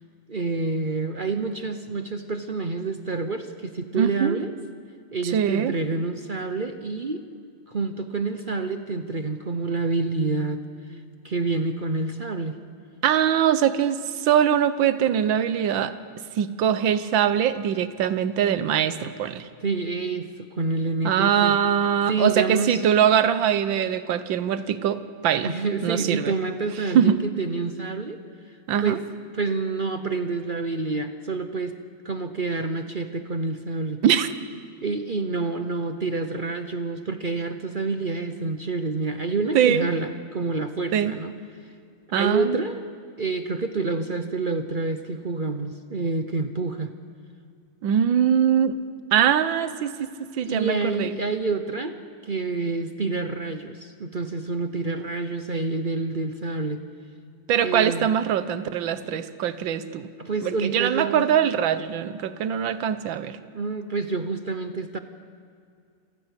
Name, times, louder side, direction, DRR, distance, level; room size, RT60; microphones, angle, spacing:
voice 1, 0.3-4.5 5.1-7.3 7.7-10.6 11.2-12.6 19.6-21.6 22.1-22.8 25.4-28.2 28.8-29.0 29.3-31.8 32.0-34.0 34.8-41.3 42.1-42.8 43.2-46.9 50.4-52.0 52.2-56.8 57.6-58.1 60.2-61.2 63.5-65.0, right 3 dB, 45° right, 8 dB, 0.6 m, -28 dB
voice 2, 3.9-4.4 5.2-5.7 13.0-15.9 16.4-19.5 21.0-25.5 25.8-26.3 26.9-27.2 28.7-29.0 34.0-34.3 39.5-39.9 40.9-41.1 42.1-42.6 47.8-48.8 49.1-49.9 50.4-51.2 57.5-60.1 60.4-63.4, right 9 dB, 80° right, 13 dB, 1.7 m, -22 dB
27.0 x 15.0 x 8.2 m, 2.3 s
omnidirectional pair, 2.1 m